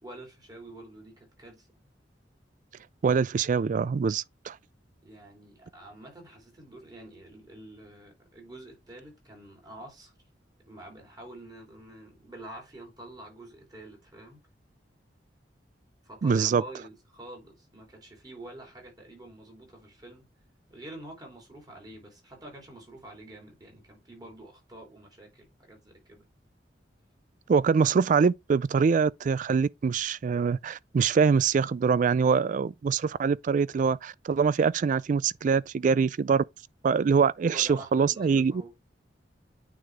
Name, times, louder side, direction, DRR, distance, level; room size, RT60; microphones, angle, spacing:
voice 1, 0.0-1.9 5.0-10.1 10.6-14.4 16.0-20.3 20.7-26.2 37.4-38.7, right 1 dB, 20° right, 3.2 m, -47 dB
voice 2, 3.0-4.6 16.2-16.6 27.5-36.4 36.8-38.6, right 5 dB, 45° right, 0.3 m, -24 dB
9.3 x 4.0 x 3.3 m
head